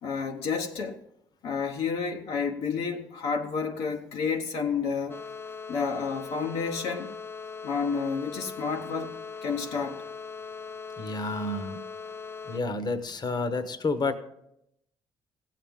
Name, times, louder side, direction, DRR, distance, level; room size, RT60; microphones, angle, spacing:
voice 1, 0.0-1.0 1.4-5.2 5.7-7.1 7.6-10.1, left 5 dB, 70° left, 1.0 m, -30 dB
sound 1, 5.1-12.6, left 5 dB, 20° left, 0.5 m, -40 dB
voice 2, 11.0-11.8 12.5-14.2, left 3 dB, 40° left, 1.1 m, -30 dB
17.0 x 7.5 x 3.6 m
hypercardioid pair, 55°, 11 cm